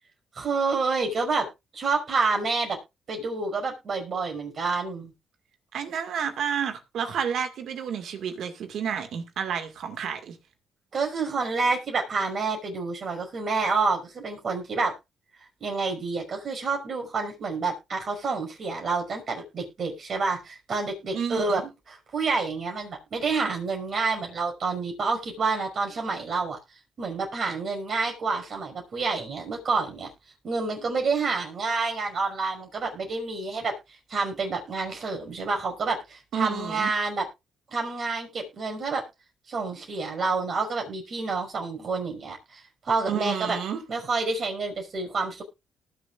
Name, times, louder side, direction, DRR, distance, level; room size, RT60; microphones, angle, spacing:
voice 1, 0.4-1.5 1.7-2.8 3.1-5.1 10.9-14.9 15.6-21.6 21.9-26.6 27.0-30.1 30.4-33.7 34.1-37.3 37.7-39.0 39.5-43.6 43.9-45.4, right 4 dB, 50° right, 5.7 m, -28 dB
voice 2, 5.7-10.4 21.1-21.6 36.3-36.9 43.1-43.8, right 7 dB, 70° right, 2.0 m, -30 dB
19.5 x 7.1 x 2.5 m
cardioid pair, 90°, 0 cm